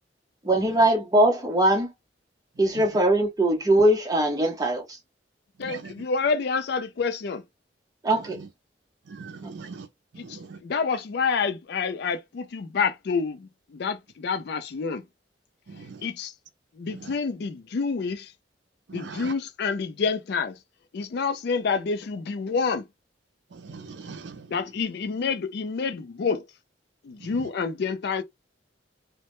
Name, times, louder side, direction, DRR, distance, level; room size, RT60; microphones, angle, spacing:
voice 1, 0.4-1.9 2.6-5.0 8.0-8.4 9.4-9.5, right 1 dB, 20° right, 0.7 m, -21 dB
voice 2, 5.6-7.4 10.2-15.0 15.7-16.3 16.8-18.3 18.9-20.6 20.9-22.9 24.5-26.4 27.0-28.2, left 5 dB, 60° left, 0.4 m, -28 dB
voice 3, 9.1-9.9 10.1-10.6 15.7-16.0 17.0-17.1 18.9-19.3 23.5-24.5 27.4-27.5, right 4 dB, 70° right, 0.5 m, -40 dB
2.1 x 2.0 x 2.9 m
head